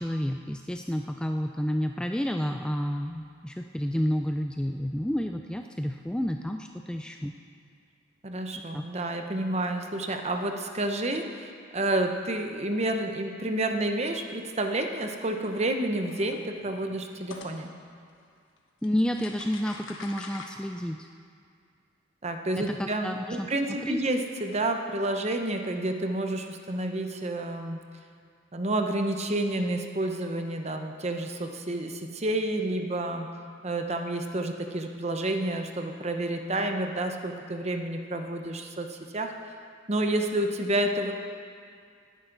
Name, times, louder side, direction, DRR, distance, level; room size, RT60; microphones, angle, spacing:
voice 1, 0.0-7.3 8.7-8.8 18.8-21.1 22.6-23.5 23.8-24.0, equal, 5° left, 4 dB, 0.3 m, -30 dB
voice 2, 8.2-17.7 22.2-27.8 28.5-33.3 33.6-39.3 39.9-41.1, right 1 dB, 35° right, 5 dB, 0.9 m, -29 dB
sound 1, 15.4-15.6 16.0-17.5 18.6-18.7 18.8-20.5, left 3 dB, 80° left, 1.3 m, -44 dB
18.5 x 10.5 x 4.0 m, 2.3 s
head